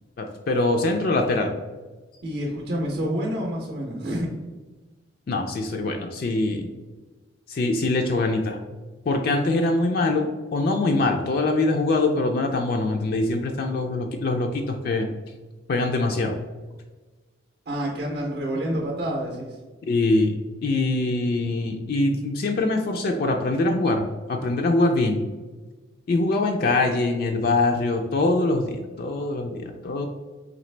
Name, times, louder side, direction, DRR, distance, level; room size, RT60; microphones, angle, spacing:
voice 1, 0.2-1.5 5.3-6.7 7.5-8.6 9.1-15.1 15.7-16.3 19.8-20.4 20.6-25.2 26.1-30.1, left 2 dB, 50° left, 3 dB, 0.3 m, -23 dB
voice 2, 2.2-4.3 17.7-19.6, equal, 50° right, -1 dB, 0.6 m, -28 dB
3.9 x 3.1 x 3.2 m, 1.3 s
head